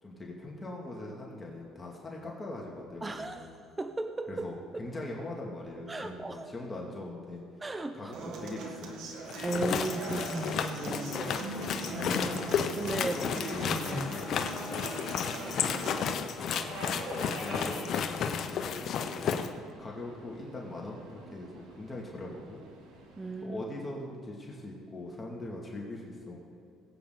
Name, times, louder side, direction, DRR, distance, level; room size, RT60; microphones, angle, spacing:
voice 1, 0.0-3.5 4.3-7.4 7.9-9.1 11.1-11.3 12.9-14.5 17.2-19.4 19.8-22.6 23.4-26.4, left 2 dB, 20° left, -2 dB, 2.2 m, -41 dB
voice 2, 3.0-3.5 3.8-4.5 5.9-6.5 7.6-8.3 9.4-11.3 11.8-12.1 12.7-13.2 13.6-14.1 23.2-23.6, right 2 dB, 15° right, 7 dB, 0.7 m, -36 dB
Human voice / Acoustic guitar, 8.1-16.1, right 3 dB, 70° right, 1.8 m, -41 dB
sound 1, 9.3-19.5, left 7 dB, 55° left, 0.9 m, -32 dB
Subway metro underground, 10.6-23.4, right 2 dB, 85° right, 2.7 m, -47 dB
21.0 x 8.7 x 3.9 m, 2.6 s
cardioid pair, 110°, 0 cm